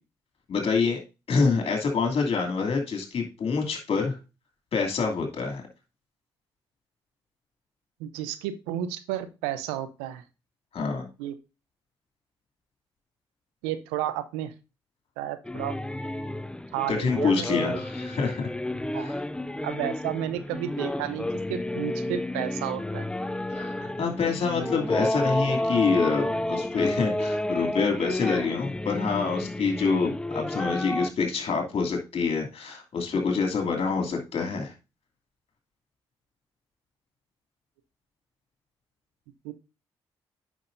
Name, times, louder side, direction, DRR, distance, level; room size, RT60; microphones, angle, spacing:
voice 1, 0.5-1.0 1.3-4.2 4.7-5.6 10.7-11.1 16.9-18.5 18.9-19.2 23.5-34.7, left 5 dB, 60° left, 3 dB, 2.7 m, -26 dB
voice 2, 8.0-10.2 11.2-11.3 13.6-14.5 15.2-15.8 16.7-17.8 18.9-19.1 19.6-23.1 24.6-24.8 39.4-39.5, right 12 dB, 90° right, 11 dB, 0.7 m, -32 dB
Dad and Mom singing., 15.4-31.1, left 1 dB, 10° left, 0.6 m, -31 dB
9.1 x 6.2 x 2.6 m, 0.29 s
hypercardioid pair, 45°, 11 cm